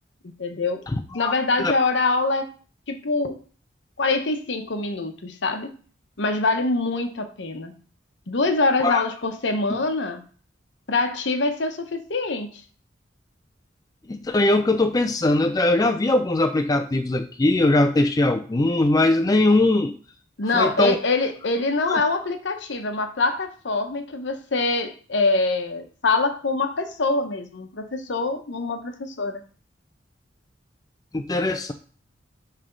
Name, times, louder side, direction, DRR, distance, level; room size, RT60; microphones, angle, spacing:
voice 1, 0.2-0.8 1.1-2.5 2.9-3.4 4.0-5.7 6.2-7.8 8.3-10.3 10.9-12.6 20.4-29.4, left 3 dB, 70° left, 7 dB, 0.8 m, -24 dB
voice 2, 0.9-1.3 1.6-1.7 8.8-9.1 9.7-9.8 14.1-19.9 20.5-21.0 21.9-22.0 31.1-31.7, left 2 dB, 20° left, 6 dB, 0.4 m, -21 dB
9.6 x 3.3 x 3.8 m, 0.42 s
head